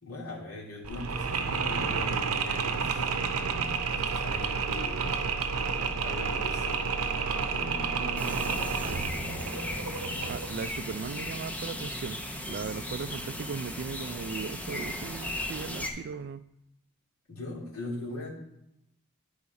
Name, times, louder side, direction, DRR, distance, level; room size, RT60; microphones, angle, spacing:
voice 1, 0.0-5.1 5.8-7.0 7.5-9.6 17.3-18.3, left 2 dB, 85° left, -4 dB, 2.5 m, -41 dB
Mechanisms, 0.8-10.6, right 5 dB, 80° right, 0.7 m, -30 dB
voice 2, 8.0-8.6 10.3-16.5, right 6 dB, 50° right, 15 dB, 0.3 m, -38 dB
sound 1, 8.2-15.9, left 1 dB, 5° left, 0.7 m, -36 dB
10.0 x 4.8 x 4.0 m, 0.82 s
head